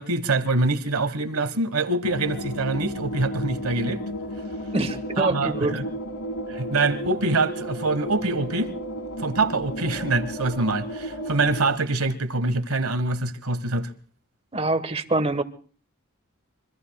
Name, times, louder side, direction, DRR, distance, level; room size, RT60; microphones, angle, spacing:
voice 1, 0.0-4.0 5.2-5.9 6.5-8.7 9.2-13.9, right 2 dB, 80° right, 1.3 m, -25 dB
sound 1, 2.0-11.7, equal, 80° left, 1.4 m, -33 dB
voice 2, 4.7-5.8 14.5-15.4, right 2 dB, 30° right, 1.2 m, -25 dB
26.0 x 24.0 x 2.3 m
head